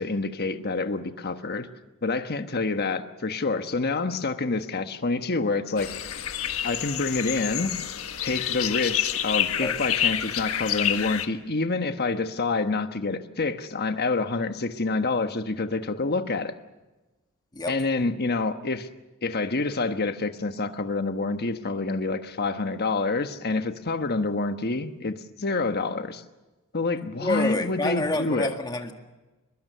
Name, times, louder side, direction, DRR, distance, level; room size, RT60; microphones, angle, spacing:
voice 1, 0.0-1.7 2.0-5.9 6.6-7.7 8.2-16.5 17.7-18.9 19.2-26.2 26.7-28.5, left 3 dB, 45° left, 8 dB, 1.3 m, -27 dB
sound 1, 5.8-11.3, left 10 dB, 70° left, 1.4 m, -28 dB
voice 2, 27.2-28.9, left 2 dB, 20° left, 5 dB, 1.9 m, -27 dB
23.5 x 22.0 x 6.8 m, 1.1 s
head